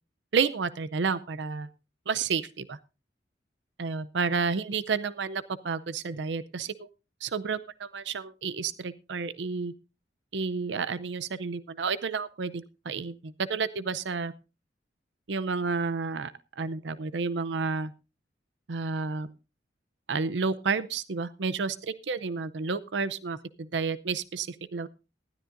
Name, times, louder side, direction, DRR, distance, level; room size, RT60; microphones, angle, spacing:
voice 1, 0.3-1.7 2.1-2.8 3.8-6.9 7.2-9.7 10.3-14.3 15.3-17.9 18.7-19.3 20.1-24.9, right 5 dB, 75° right, 15 dB, 0.6 m, -31 dB
19.5 x 13.0 x 2.6 m, 0.29 s
head